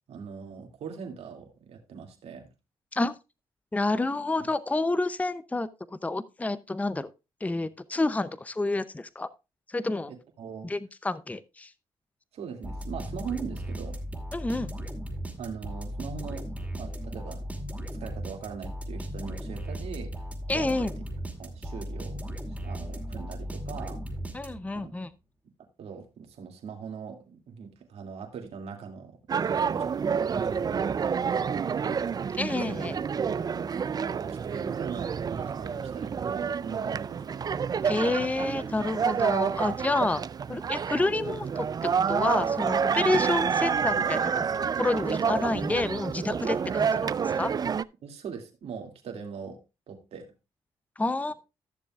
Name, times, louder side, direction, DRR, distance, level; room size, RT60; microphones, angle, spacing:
voice 1, 0.1-2.5 10.1-10.7 12.3-14.0 15.4-16.5 16.7-17.4 18.0-20.2 20.5-20.9 21.4-22.2 22.6-24.0 24.8-24.9 25.8-29.2 29.4-32.1 32.7-32.9 33.2-37.5 48.0-49.6 49.9-50.3, right 6 dB, 75° right, 3 dB, 2.3 m, -41 dB
voice 2, 3.7-5.7 6.0-7.1 7.4-9.3 9.7-10.1 10.6-11.7 14.3-14.7 20.5-20.9 24.3-25.1 32.4-33.0 37.8-40.2 40.5-41.7 41.9-44.5 44.8-47.5 51.0-51.3, left 2 dB, 15° left, 15 dB, 0.6 m, -29 dB
sound 1, 12.6-24.9, equal, 10° right, 2.3 m, -36 dB
sound 2, 29.3-47.8, right 6 dB, 40° right, 0.4 m, -28 dB
14.0 x 6.9 x 2.4 m, 0.26 s
cardioid pair, 70°, 11 cm